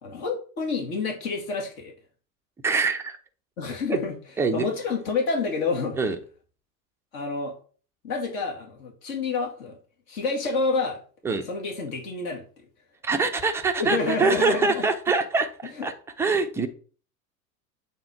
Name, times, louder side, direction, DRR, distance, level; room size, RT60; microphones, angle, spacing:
voice 1, 0.0-1.9 3.6-4.1 4.5-6.0 7.1-7.5 8.0-9.8 10.1-11.0 11.4-12.6 13.8-14.9 15.8-15.9, left 4 dB, 55° left, 0 dB, 2.2 m, -28 dB
voice 2, 2.6-3.2 3.9-4.0 4.4-4.7 6.0-6.2 11.2-11.5 13.0-15.9 16.2-16.7, right 4 dB, 5° right, 5 dB, 0.4 m, -24 dB
8.0 x 3.6 x 4.6 m, 0.40 s
figure-of-eight pair, 80°, 50 cm